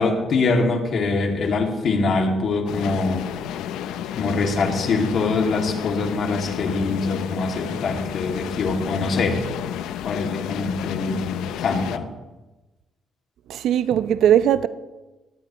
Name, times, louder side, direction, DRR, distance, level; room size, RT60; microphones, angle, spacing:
voice 1, 0.0-3.3 4.2-9.4 10.0-12.1, left 3 dB, 60° left, 2.4 m, -23 dB
sound 1, 2.7-12.0, left 10 dB, 90° left, 0.6 m, -31 dB
voice 2, 13.5-14.7, right 10 dB, 80° right, 0.6 m, -19 dB
19.0 x 14.5 x 3.1 m
cardioid pair, 90°, 0 cm